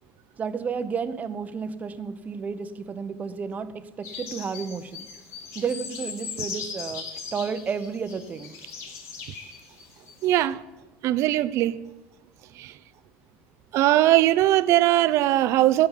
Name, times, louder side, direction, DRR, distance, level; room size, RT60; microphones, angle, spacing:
voice 1, 0.4-5.1 5.5-8.5, right 6 dB, 30° right, 1.0 m, -32 dB
sound 1, 4.0-10.4, left 5 dB, 60° left, 2.8 m, -39 dB
voice 2, 10.2-10.6 11.0-11.8 12.6-12.7 13.7-15.9, right 14 dB, 60° right, 0.6 m, -20 dB
16.5 x 5.4 x 9.9 m
cardioid pair, 125°, 6 cm